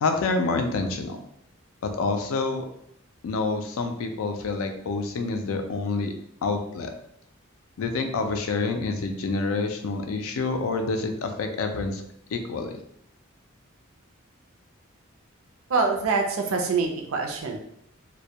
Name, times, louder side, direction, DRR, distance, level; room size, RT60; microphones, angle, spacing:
voice 1, 0.0-1.2 1.8-2.7 3.2-6.1 6.4-6.9 7.8-12.0 12.3-12.8, left 3 dB, 85° left, 6 dB, 0.4 m, -27 dB
voice 2, 15.7-17.6, right 4 dB, 85° right, 3 dB, 0.5 m, -25 dB
2.1 x 2.1 x 2.7 m, 0.72 s
head